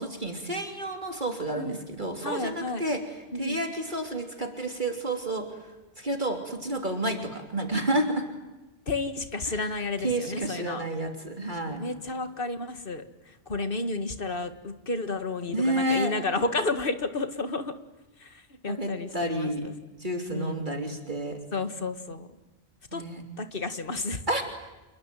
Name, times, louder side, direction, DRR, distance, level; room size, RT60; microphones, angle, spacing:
voice 1, 0.0-3.0 3.4-5.4 6.0-8.2 9.5-9.7 10.0-11.8 15.5-16.1 18.7-19.7 20.0-21.4 22.9-23.2 24.3-24.4, right 1 dB, 40° right, 4 dB, 3.4 m, -30 dB
voice 2, 2.2-2.8 3.3-3.6 8.9-10.8 11.8-17.7 18.2-19.7 20.3-20.6 21.5-22.4 22.9-23.0 23.4-24.2, left 3 dB, 45° left, 9 dB, 2.2 m, -32 dB
28.5 x 22.0 x 9.3 m, 1.1 s
omnidirectional pair, 1.2 m